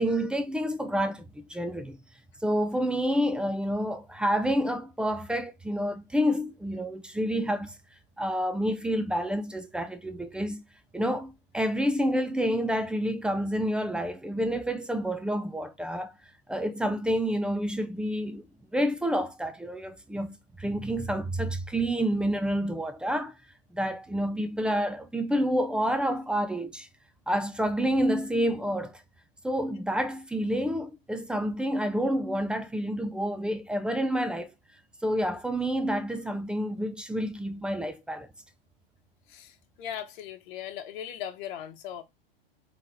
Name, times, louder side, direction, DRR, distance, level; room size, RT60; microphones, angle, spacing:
voice 1, 0.0-2.0 2.4-7.8 8.2-10.6 10.9-16.1 16.5-18.4 18.7-23.3 23.7-26.9 27.3-29.0 29.4-34.5 35.0-38.3, equal, 5° right, 0.4 m, -28 dB
voice 2, 39.8-42.0, left 10 dB, 60° left, 1.1 m, -38 dB
3.8 x 3.0 x 4.2 m
hypercardioid pair, 110°, 29 cm